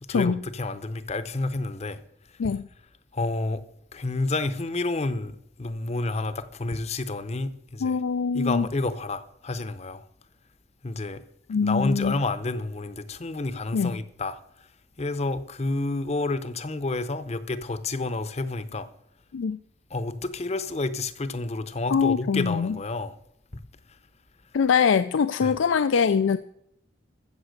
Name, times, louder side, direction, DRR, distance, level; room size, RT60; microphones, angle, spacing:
voice 1, 0.1-2.0 2.4-2.5 3.1-3.6 3.9-8.0 8.3-10.1 10.8-11.2 11.6-14.7 15.0-18.9 19.9-23.2 23.5-23.6 25.4-25.5, left 2 dB, 35° left, 0.7 m, -29 dB
voice 2, 7.8-8.7 11.5-12.1 13.7-14.0 19.3-19.6 21.9-22.8 24.5-26.4, left 6 dB, 85° left, 0.4 m, -23 dB
14.5 x 7.0 x 6.5 m
head